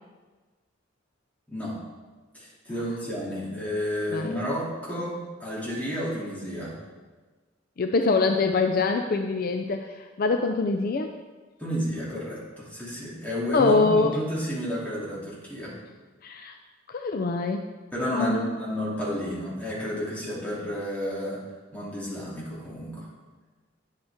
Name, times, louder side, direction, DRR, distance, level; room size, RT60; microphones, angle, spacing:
voice 1, 2.3-6.8 11.6-15.7 17.9-21.4 21.7-23.0, equal, 10° left, -7 dB, 2.7 m, -31 dB
voice 2, 7.8-11.2 13.5-14.1 16.2-16.5 16.9-17.6 18.1-18.5, left 3 dB, 50° left, 5 dB, 0.4 m, -24 dB
9.5 x 7.9 x 3.6 m, 1.3 s
head